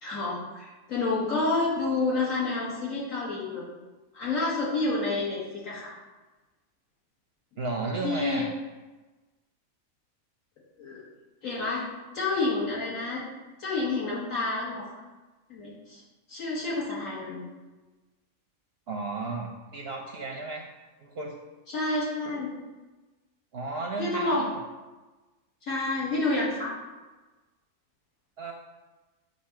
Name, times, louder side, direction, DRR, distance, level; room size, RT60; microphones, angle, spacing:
voice 1, 0.0-3.6 4.1-5.9 8.0-8.4 10.8-11.0 11.4-11.8 12.1-13.2 13.6-14.8 15.5-16.0 16.3-17.4 21.7-22.5 24.0-24.4 25.6-26.7, left 3 dB, 65° left, -7 dB, 2.2 m, -29 dB
voice 2, 7.6-8.5 18.9-20.7 21.0-21.3 23.5-24.5 28.4-28.5, right 3 dB, 55° right, 1 dB, 0.8 m, -34 dB
7.0 x 2.6 x 5.7 m, 1.2 s
omnidirectional pair, 1.5 m